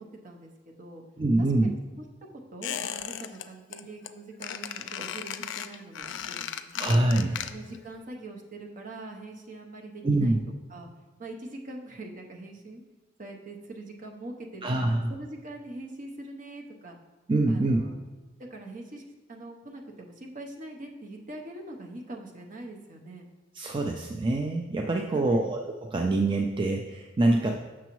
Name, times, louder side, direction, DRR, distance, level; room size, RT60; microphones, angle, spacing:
voice 1, 0.0-1.0 1.6-2.0 2.3-6.9 7.5-10.4 10.7-10.9 11.2-12.8 13.2-17.0 17.5-18.0 18.5-23.3 25.1-25.5, right 2 dB, 45° right, 1 dB, 0.8 m, -43 dB
voice 2, 1.2-1.7 6.8-7.4 10.0-10.4 14.6-15.1 17.3-17.8 23.6-25.6 25.9-27.5, right 2 dB, 25° right, 2 dB, 0.4 m, -25 dB
Squeak, 2.6-3.4 3.7-4.1 4.4-7.8 8.1-8.2, left 9 dB, 80° left, 0.4 m, -36 dB
6.9 x 6.1 x 3.1 m, 1.2 s
head